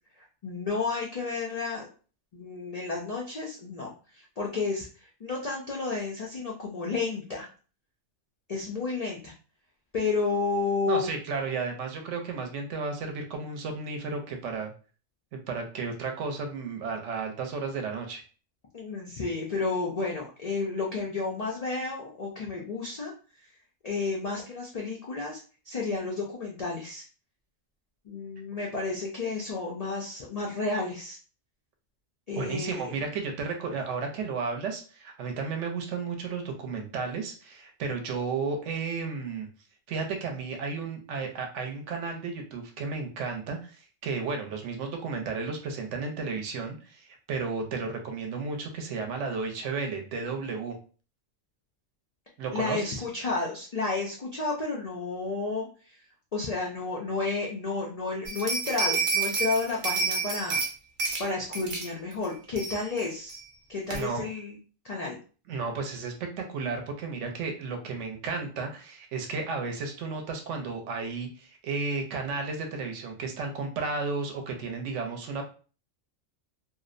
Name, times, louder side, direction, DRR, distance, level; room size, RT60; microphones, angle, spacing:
voice 1, 0.1-1.9 2.3-7.5 8.5-9.3 9.9-11.1 18.7-23.1 23.8-25.4 25.7-27.0 28.1-31.2 32.3-32.9 52.5-56.0 56.3-60.6 61.2-63.4 63.7-64.6 64.8-65.2, left 3 dB, 75° left, -2 dB, 0.3 m, -31 dB
voice 2, 10.9-14.7 15.3-18.2 32.4-39.5 39.9-50.8 52.4-53.0 63.9-64.2 65.5-75.4, right 4 dB, 70° right, 4 dB, 0.9 m, -33 dB
sound 1, 58.3-60.7 61.0-61.2 61.5-61.9 62.2-62.3 62.6-63.0 63.3-63.4 63.9-64.0, right 4 dB, 55° right, 0.6 m, -29 dB
2.6 x 2.0 x 2.4 m, 0.37 s
omnidirectional pair, 1.3 m